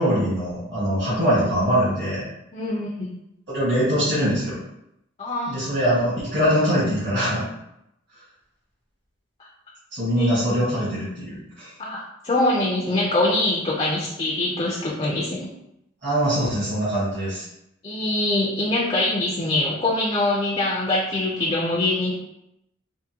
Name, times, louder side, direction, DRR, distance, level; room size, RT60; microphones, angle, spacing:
voice 1, 0.0-2.2 3.5-4.6 5.5-7.5 9.9-11.7 16.0-17.5, equal, 60° right, -10 dB, 1.4 m, -22 dB
voice 2, 2.5-2.9 5.2-5.5 10.2-10.4 11.8-15.5 17.8-22.1, left 2 dB, 30° left, -4 dB, 0.4 m, -23 dB
3.5 x 2.1 x 2.8 m, 0.82 s
head